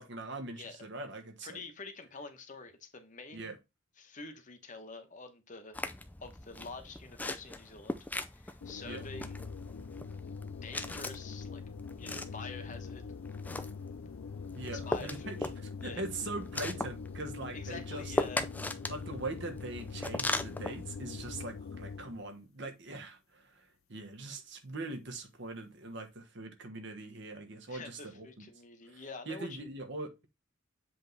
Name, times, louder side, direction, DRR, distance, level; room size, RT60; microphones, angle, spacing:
voice 1, 0.0-1.6 3.3-3.5 8.8-9.0 14.5-18.1 18.9-28.3 28.9-30.3, right 2 dB, 60° right, 1.3 m, -42 dB
voice 2, 1.4-3.5 4.0-5.8 6.2-9.5 10.6-11.6 12.0-13.0 14.7-15.4 15.8-16.0 17.5-18.5 27.7-29.7, left 3 dB, 40° left, 1.1 m, -47 dB
sound 1, 5.7-21.4, left 2 dB, 10° left, 0.4 m, -40 dB
sound 2, 8.6-22.3, left 5 dB, 80° left, 0.4 m, -43 dB
7.7 x 3.4 x 4.0 m
head